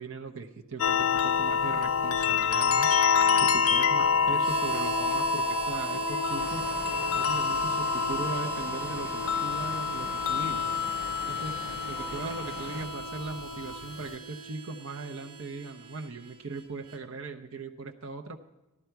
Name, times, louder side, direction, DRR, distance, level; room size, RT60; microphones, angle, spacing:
voice 1, 0.0-2.9 3.4-6.7 7.0-10.7 11.3-11.6 11.9-18.4, right 3 dB, 65° right, 3 dB, 0.7 m, -39 dB
sound 1, 0.8-14.1, left 6 dB, 75° left, 0.4 m, -28 dB
Harmonica, 4.3-17.0, right 4 dB, 90° right, 1.4 m, -37 dB
sound 2, 6.3-12.9, right 1 dB, 10° right, 2.1 m, -43 dB
14.0 x 11.0 x 4.6 m, 1.0 s
head